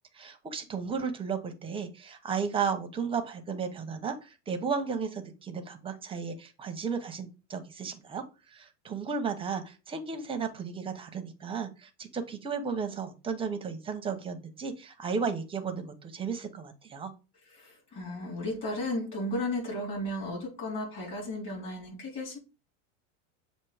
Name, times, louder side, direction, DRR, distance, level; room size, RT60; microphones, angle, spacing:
voice 1, 0.1-8.2 8.5-17.1, right 5 dB, 15° right, 0.8 m, -34 dB
voice 2, 17.5-22.4, left 1 dB, 30° left, 3.9 m, -34 dB
7.5 x 2.7 x 4.8 m
supercardioid pair, 140°, 39 cm